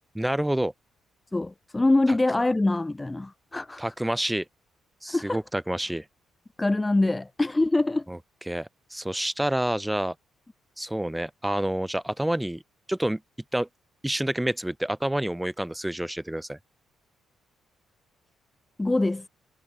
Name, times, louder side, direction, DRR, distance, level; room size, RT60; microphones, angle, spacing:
voice 1, 0.1-0.7 3.8-4.4 5.0-6.0 8.1-8.2 8.5-10.1 10.8-12.6 12.9-13.2 13.5-13.7 14.0-16.6, right 1 dB, 5° right, 1.3 m, -28 dB
voice 2, 1.3-3.9 5.1-5.4 6.6-8.0 18.8-19.3, left 2 dB, 15° left, 0.5 m, -24 dB
cardioid pair, 90°, 0 cm